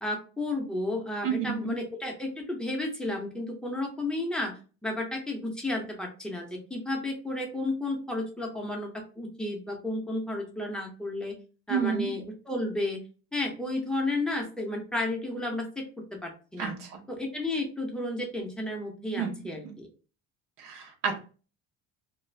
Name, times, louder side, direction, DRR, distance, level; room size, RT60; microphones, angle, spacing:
voice 1, 0.0-4.5 4.8-11.3 11.7-13.0 13.3-15.8 16.1-16.7 17.1-19.9, left 2 dB, 5° left, 0 dB, 0.5 m, -32 dB
voice 2, 1.2-1.8 11.7-12.1 16.6-17.0 19.2-19.4 20.6-21.2, right 7 dB, 80° right, 3 dB, 0.8 m, -30 dB
2.4 x 2.3 x 3.1 m, 0.36 s
cardioid pair, 165°, 30 cm